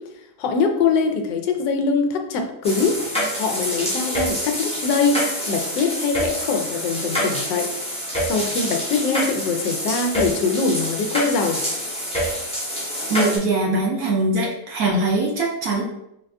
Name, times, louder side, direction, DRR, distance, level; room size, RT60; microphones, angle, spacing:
voice 1, 0.4-2.9 3.4-5.2 5.5-7.7 8.2-11.6, left 4 dB, 90° left, 4 dB, 1.2 m, -22 dB
sound 1, 2.6-13.4, equal, 5° left, 0.4 m, -26 dB
voice 2, 13.1-15.8, right 2 dB, 65° right, -1 dB, 1.1 m, -22 dB
4.0 x 2.4 x 3.4 m, 0.82 s
omnidirectional pair, 1.8 m